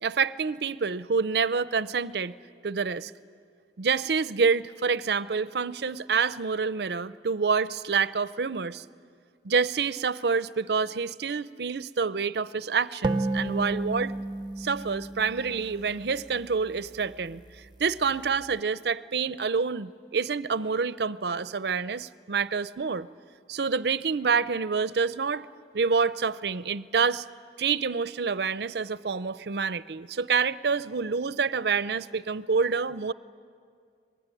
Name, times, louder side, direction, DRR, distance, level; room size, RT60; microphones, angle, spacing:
voice 1, 0.0-2.3 2.6-3.1 3.8-8.8 9.4-14.1 14.6-17.4 17.8-23.1 23.5-25.5 25.7-27.2 27.6-33.1, right 5 dB, 65° right, 17 dB, 0.6 m, -27 dB
sound 1, 13.0-16.5, right 2 dB, 25° right, 0.7 m, -31 dB
25.0 x 21.0 x 10.0 m, 2.2 s
head